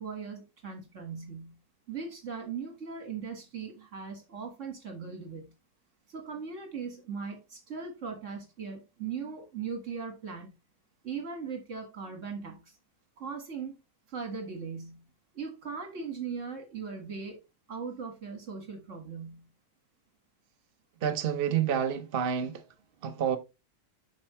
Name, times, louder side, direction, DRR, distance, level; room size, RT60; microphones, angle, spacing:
voice 1, 0.0-1.6 1.9-5.5 6.1-10.5 11.0-12.7 13.2-13.7 14.1-15.0 15.3-17.4 17.7-19.5, right 5 dB, 45° right, 1.9 m, -39 dB
voice 2, 21.0-22.6 23.0-23.4, right 8 dB, 70° right, 0.5 m, -28 dB
7.4 x 5.4 x 3.1 m
omnidirectional pair, 1.9 m